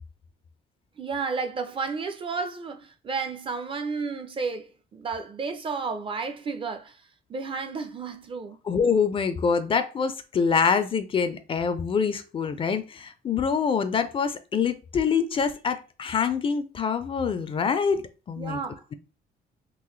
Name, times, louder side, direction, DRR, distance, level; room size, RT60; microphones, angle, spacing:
voice 1, 1.0-8.6 18.4-18.9, right 4 dB, 30° right, 0.5 m, -32 dB
voice 2, 8.7-18.6, left 6 dB, 30° left, 0.4 m, -25 dB
3.8 x 2.5 x 3.1 m
cardioid pair, 110°, 17 cm